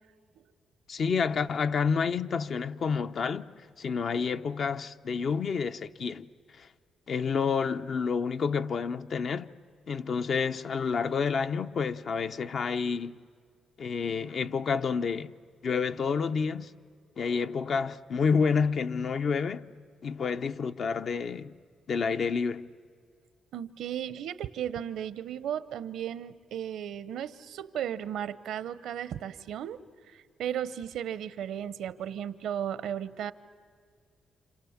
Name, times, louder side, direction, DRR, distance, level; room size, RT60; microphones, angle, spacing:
voice 1, 0.9-3.5 3.8-6.3 6.6-6.7 7.1-9.5 9.9-13.2 13.8-15.3 15.6-16.7 17.2-19.6 20.0-21.6 21.9-22.7, left 5 dB, 55° left, 0.7 m, -29 dB
voice 2, 23.5-29.8 30.1-33.3, right 10 dB, 85° right, 0.7 m, -35 dB
29.0 x 27.0 x 7.2 m
cardioid pair, 85°, 0 cm